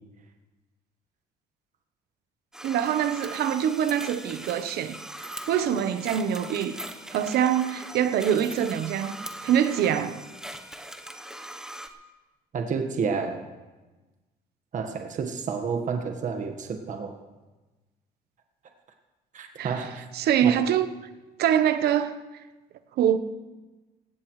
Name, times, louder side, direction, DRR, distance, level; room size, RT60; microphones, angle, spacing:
sound 1, 2.5-11.9, right 1 dB, 5° right, 1.0 m, -40 dB
voice 1, 2.6-5.0 5.5-6.8 7.1-9.2 9.4-10.2 19.6-19.8 20.1-20.9 21.4-22.2 23.0-23.2, right 9 dB, 70° right, 1.0 m, -24 dB
voice 2, 12.5-13.5 14.7-17.1 19.3-20.0 20.4-20.6, right 5 dB, 50° right, 1.5 m, -30 dB
17.5 x 16.5 x 3.2 m
cardioid pair, 110°, 17 cm